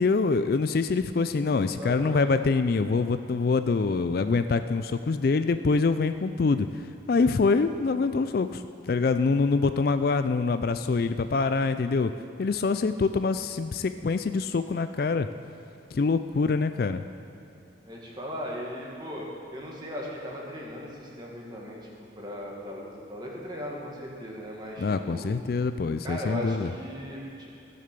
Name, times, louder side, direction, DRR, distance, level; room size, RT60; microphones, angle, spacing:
voice 1, 0.0-6.7 7.1-12.1 12.4-15.3 15.9-17.0 24.8-26.7, left 4 dB, 50° left, 10 dB, 0.3 m, -25 dB
voice 2, 1.6-2.3 17.8-21.8 22.2-25.3 26.0-27.6, equal, 20° right, -3 dB, 1.8 m, -38 dB
15.5 x 6.7 x 6.8 m, 2.5 s
head